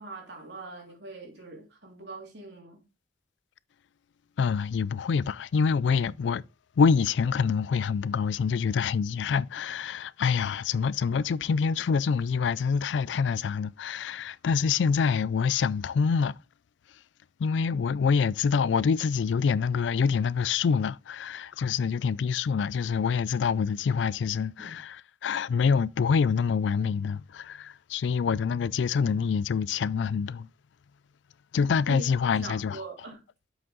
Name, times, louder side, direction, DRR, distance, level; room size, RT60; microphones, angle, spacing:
voice 1, 0.0-2.8 24.6-24.8 31.9-32.0 32.4-33.2, right 3 dB, 75° right, 3.0 m, -42 dB
voice 2, 4.4-6.4 6.8-16.3 17.4-30.5 31.5-32.9, left 6 dB, 85° left, 0.4 m, -26 dB
7.2 x 6.1 x 3.9 m
head